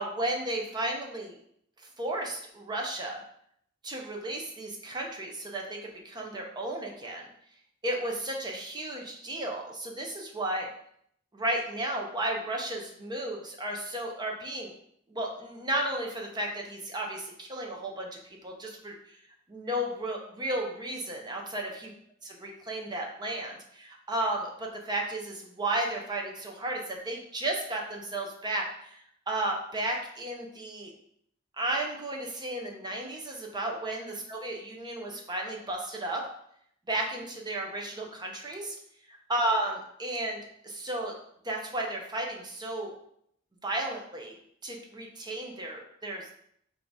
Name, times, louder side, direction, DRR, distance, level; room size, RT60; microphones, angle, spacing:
voice 1, 0.0-1.4 2.0-3.2 3.8-7.3 7.8-10.7 11.3-14.7 15.1-18.1 18.4-19.2 19.5-21.9 22.2-30.9 31.6-36.2 36.9-38.8 39.3-41.1 41.4-42.9 43.6-44.4 44.6-46.3, right 1 dB, 20° right, 0 dB, 0.6 m, -33 dB
3.7 x 2.6 x 4.6 m, 0.68 s
head